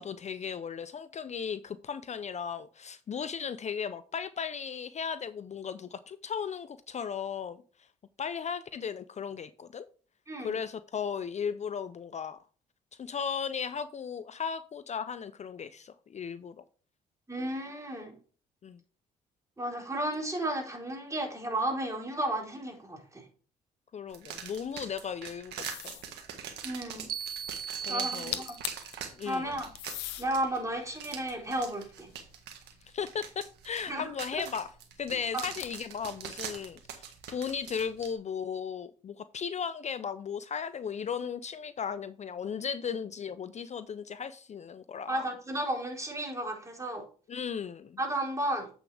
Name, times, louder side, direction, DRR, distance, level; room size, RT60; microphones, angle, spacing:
voice 1, 0.0-7.9 8.2-9.9 10.4-12.4 13.0-16.6 18.6-18.8 23.9-26.0 27.9-28.4 29.1-29.5 32.9-34.7 35.0-45.3 47.3-48.0, left 7 dB, 40° left, 13 dB, 0.6 m, -36 dB
voice 2, 17.3-18.2 19.6-23.3 26.6-27.1 27.9-28.6 29.2-29.7 30.2-32.1 33.9-34.1 35.3-35.4 45.1-47.0 48.0-48.7, right 1 dB, 20° right, 0 dB, 4.0 m, -33 dB
sound 1, 24.1-38.1, right 8 dB, 75° right, 1.6 m, -44 dB
sound 2, 25.6-26.1 28.1-28.2 28.3-28.9 29.7-30.3 31.0-32.4 35.4-35.9, left 13 dB, 80° left, 0.8 m, -39 dB
sound 3, 27.1-29.0, right 7 dB, 60° right, 0.9 m, -37 dB
8.3 x 7.1 x 3.4 m, 0.40 s
hypercardioid pair, 55°, 17 cm